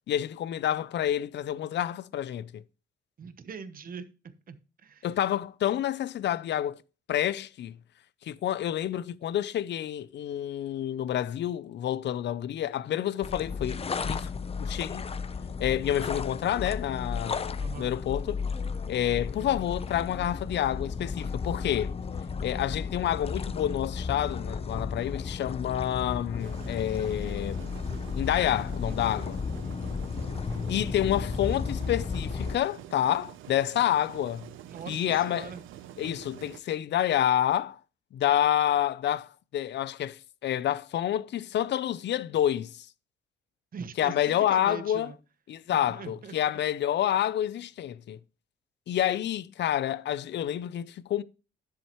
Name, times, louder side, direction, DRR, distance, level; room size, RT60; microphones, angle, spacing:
voice 1, 0.1-2.6 5.0-6.8 7.1-7.7 8.2-14.3 14.6-15.1 15.6-18.4 18.9-21.9 22.4-27.7 28.1-29.4 30.7-34.5 34.9-35.5 36.0-37.8 38.1-42.9 44.0-45.1 45.5-48.2 48.9-51.2, left 11 dB, 60° left, 0.6 m, -28 dB
voice 2, 3.2-5.1 17.6-17.9 34.6-35.6 43.7-45.2 45.7-46.6, right 6 dB, 45° right, 1.1 m, -42 dB
sound 1, 13.2-32.6, left 5 dB, 30° left, 0.8 m, -34 dB
sound 2, 26.4-36.6, right 11 dB, 85° right, 0.7 m, -47 dB
10.5 x 7.6 x 3.0 m
cardioid pair, 90°, 20 cm